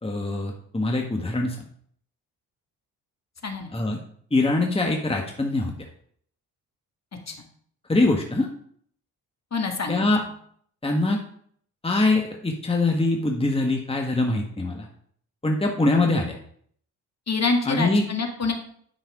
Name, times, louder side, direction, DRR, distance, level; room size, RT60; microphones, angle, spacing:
voice 1, 0.0-1.6 3.7-4.0 4.3-5.7 7.9-8.5 9.9-10.2 10.8-11.2 11.8-14.9 15.4-16.3 17.7-18.0, left 2 dB, 15° left, 2 dB, 1.5 m, -23 dB
voice 2, 9.5-10.1 17.3-18.5, left 4 dB, 40° left, 3 dB, 2.0 m, -26 dB
10.0 x 5.7 x 4.9 m, 0.62 s
hypercardioid pair, 45°, 43 cm